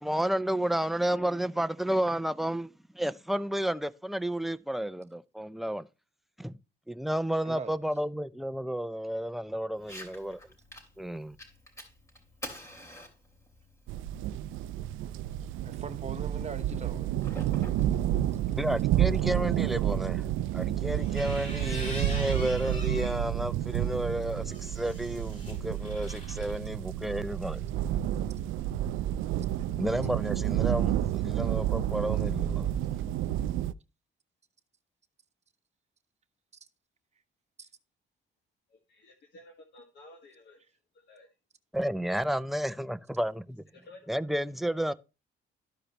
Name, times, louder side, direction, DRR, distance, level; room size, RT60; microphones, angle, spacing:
voice 1, 0.0-2.7 2.9-5.9 6.4-6.5 6.9-10.4 11.0-11.4 18.6-20.2 20.5-27.6 29.7-32.7 41.7-43.6 44.1-44.9, right 1 dB, ahead, 0.5 m, -31 dB
voice 2, 7.4-7.8 15.6-17.1 37.6-37.7, right 5 dB, 35° right, 1.0 m, -41 dB
Fire, 9.8-18.8, equal, 15° left, 2.9 m, -49 dB
sound 1, 13.9-33.7, right 12 dB, 85° right, 0.4 m, -30 dB
sound 2, 20.9-23.2 23.7-26.5, left 1 dB, 40° left, 4.0 m, -43 dB
voice 3, 38.7-41.3 43.7-44.2, left 2 dB, 60° left, 1.4 m, -54 dB
13.5 x 4.9 x 2.9 m
cardioid pair, 90°, 20 cm